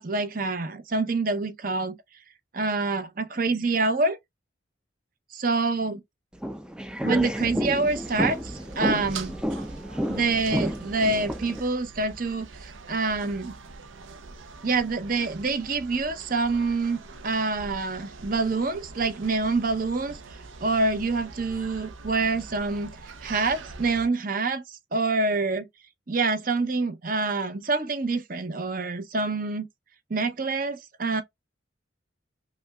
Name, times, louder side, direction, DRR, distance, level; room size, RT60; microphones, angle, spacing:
voice 1, 0.0-2.0 2.5-4.2 5.3-6.0 7.0-9.3 10.1-13.5 14.6-25.7 26.1-29.7 30.1-31.2, right 3 dB, 45° right, 0.7 m, -26 dB
sound 1, 6.4-11.6, equal, 5° right, 0.4 m, -30 dB
sound 2, 7.8-24.1, right 4 dB, 85° right, 0.6 m, -43 dB
5.1 x 2.2 x 2.3 m
head